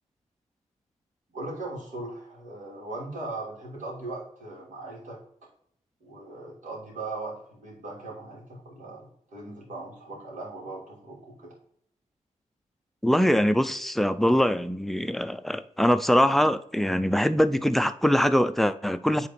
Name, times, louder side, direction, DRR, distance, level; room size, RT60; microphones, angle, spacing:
voice 1, 1.3-5.2 6.0-11.5, right 2 dB, 70° right, 2.9 m, -39 dB
voice 2, 13.0-19.3, equal, ahead, 0.4 m, -23 dB
8.5 x 3.9 x 4.3 m
wide cardioid pair, 105°, 13 cm